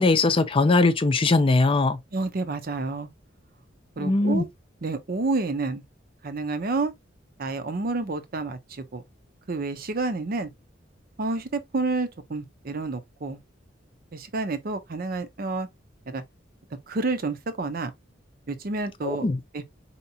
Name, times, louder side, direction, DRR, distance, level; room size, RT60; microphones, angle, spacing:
voice 1, 0.0-2.0 4.0-4.4 19.0-19.4, left 3 dB, 30° left, 0.5 m, -20 dB
voice 2, 2.1-3.1 4.0-4.5 4.8-5.8 6.2-6.9 7.4-9.0 9.5-10.5 11.2-13.4 14.1-15.7 16.1-16.2 16.9-17.9 18.5-19.3 19.5-19.7, right 3 dB, 50° right, 0.6 m, -29 dB
4.5 x 2.9 x 2.7 m
head